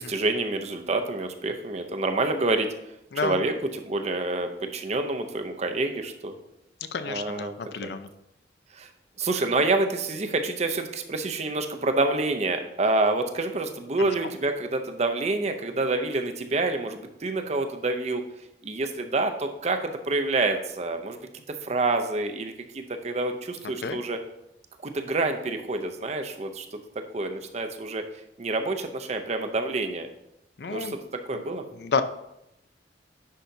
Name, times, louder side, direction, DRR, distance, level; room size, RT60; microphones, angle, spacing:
voice 1, 0.0-2.7 3.2-3.5 3.8-6.3 7.1-7.5 7.8-7.9 8.7-8.9 9.2-18.2 18.6-21.2 21.6-24.2 24.8-26.8 27.1-28.0 28.4-30.1 30.7-31.0 31.3-31.6, right 2 dB, 35° right, 6 dB, 0.6 m, -27 dB
voice 2, 6.9-8.1 14.0-14.3 23.6-24.0 30.6-31.0 31.3-31.4 31.7-32.0, left 5 dB, 60° left, 10 dB, 0.4 m, -31 dB
10.0 x 5.6 x 2.7 m, 0.85 s
head